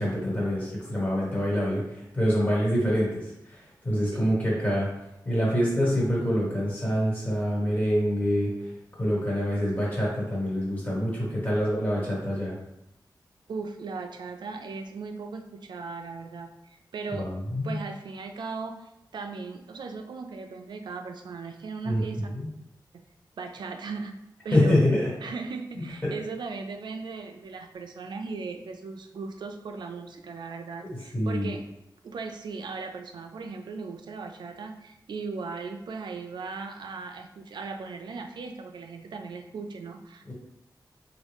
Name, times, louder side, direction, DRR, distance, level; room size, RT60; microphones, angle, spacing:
voice 1, 0.0-4.9 5.2-8.5 9.0-12.5 17.2-17.8 21.8-22.0 22.3-22.5 24.5-25.0 26.0-26.1 30.8-31.5 40.3-40.4, equal, 20° left, -5 dB, 1.4 m, -26 dB
voice 2, 4.0-4.4 13.5-17.3 17.6-22.3 22.9-23.0 23.4-24.1 24.4-24.8 25.2-31.6 32.0-40.3, right 4 dB, 85° right, 6 dB, 0.4 m, -37 dB
3.6 x 2.3 x 3.5 m, 0.85 s
wide cardioid pair, 135°, 8 cm